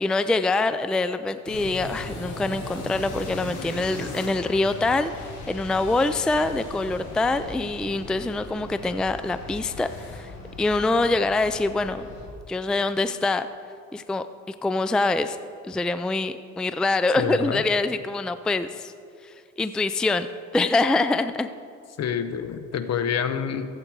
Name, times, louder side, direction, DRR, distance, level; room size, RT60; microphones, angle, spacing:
voice 1, 0.0-10.3 10.6-12.1 12.5-13.5 13.9-15.4 15.6-18.9 19.2-20.3 20.5-21.5, left 2 dB, 5° left, 11 dB, 0.3 m, -25 dB
sound 1, 1.5-12.3, left 2 dB, 80° left, 2.5 m, -38 dB
voice 2, 17.2-17.6 22.0-23.7, left 7 dB, 60° left, 10 dB, 0.9 m, -27 dB
15.5 x 8.0 x 4.6 m, 2.4 s
cardioid pair, 90°, 30 cm